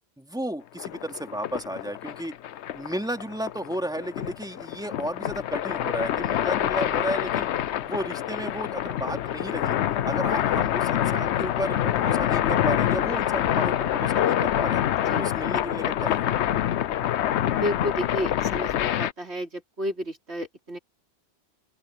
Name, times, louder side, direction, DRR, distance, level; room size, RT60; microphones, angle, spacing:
voice 1, 0.2-2.4 2.7-7.5 7.8-9.7 10.0-14.8 15.2-16.4, right 1 dB, 5° right, 2.9 m, -33 dB
sound 1, 0.8-19.1, left 11 dB, 85° left, 0.9 m, -26 dB
voice 2, 17.5-20.8, equal, 75° right, 4.7 m, -31 dB
open air
omnidirectional pair, 1.1 m